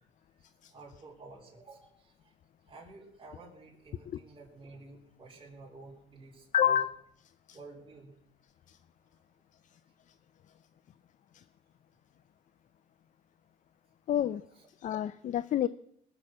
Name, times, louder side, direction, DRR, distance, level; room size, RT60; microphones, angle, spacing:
voice 1, 0.0-2.3 2.6-6.8 7.5-8.1 14.5-14.7, right 3 dB, 30° right, 3.9 m, -52 dB
voice 2, 6.5-6.9 7.5-7.6 8.7-8.8 11.3-11.4 14.1-14.4 14.8-15.7, left 10 dB, 50° left, 0.5 m, -28 dB
21.0 x 7.0 x 7.5 m
cardioid pair, 110°, 17 cm